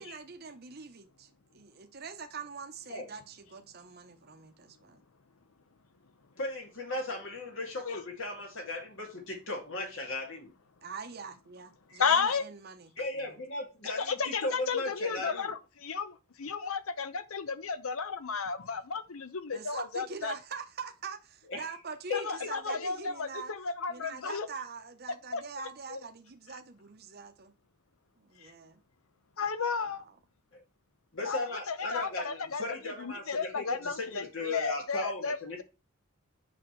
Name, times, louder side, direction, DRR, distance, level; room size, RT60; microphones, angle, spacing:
voice 1, 0.0-5.0 10.8-13.4 19.5-23.5 23.9-27.5 28.2-28.8 29.8-30.2, right 5 dB, 45° right, 0.8 m, -44 dB
voice 2, 6.4-10.5 11.9-12.0 13.0-15.5 21.5-21.6 22.1-22.8 30.5-30.6 31.1-35.6, left 2 dB, 65° left, 2.3 m, -37 dB
voice 3, 12.0-12.4 14.0-20.3 22.1-24.5 25.3-25.4 25.9-26.0 29.4-30.0 31.3-31.4 31.7-35.6, left 5 dB, 80° left, 0.8 m, -33 dB
7.9 x 5.7 x 3.2 m
head